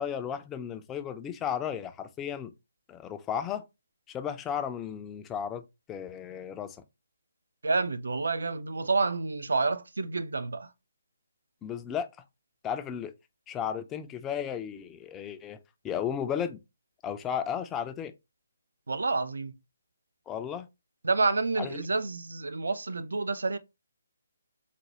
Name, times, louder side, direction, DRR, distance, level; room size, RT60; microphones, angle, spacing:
voice 1, 0.0-2.5 2.9-3.6 4.1-5.6 5.9-6.8 11.6-12.1 12.6-13.1 13.5-15.6 15.8-16.6 17.0-18.1 20.3-20.7 21.6-21.8, left 8 dB, 15° left, 0.3 m, -34 dB
voice 2, 7.6-10.7 18.9-19.5 21.0-23.6, right 3 dB, 60° right, 0.4 m, -29 dB
4.1 x 2.1 x 2.8 m
figure-of-eight pair, 140°, 0 cm